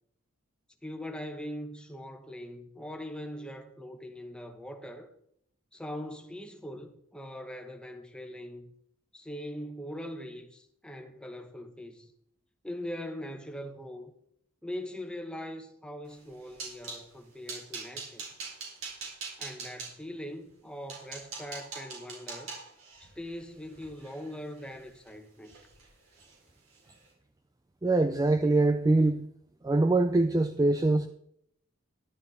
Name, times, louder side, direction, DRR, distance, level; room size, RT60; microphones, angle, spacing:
voice 1, 0.8-5.1 5.7-8.7 9.1-12.1 12.6-14.1 14.6-18.2 19.4-22.6 23.0-25.6, equal, 5° left, 1.1 m, -41 dB
sound 1, 16.1-17.0 17.5-19.9 20.5-20.6 20.9-25.1 25.4-25.9 26.1-26.3 26.7-26.9, right 4 dB, 65° right, 4.4 m, -42 dB
voice 2, 27.8-29.3 29.6-31.1, right 2 dB, 15° right, 0.4 m, -23 dB
11.5 x 11.5 x 4.2 m
head